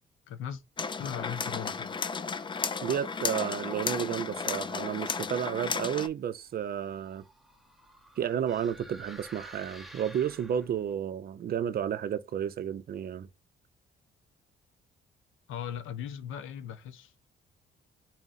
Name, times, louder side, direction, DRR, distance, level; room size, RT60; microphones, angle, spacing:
voice 1, 0.3-0.6 1.0-2.0 15.5-17.3, left 9 dB, 85° left, 0.7 m, -38 dB
sound 1, 0.8-6.1, left 5 dB, 25° left, 0.4 m, -34 dB
voice 2, 2.8-7.2 8.2-13.3, right 9 dB, 50° right, 0.5 m, -32 dB
sound 2, 6.5-10.9, right 1 dB, ahead, 0.8 m, -51 dB
3.9 x 2.4 x 4.0 m
cardioid pair, 90°, 20 cm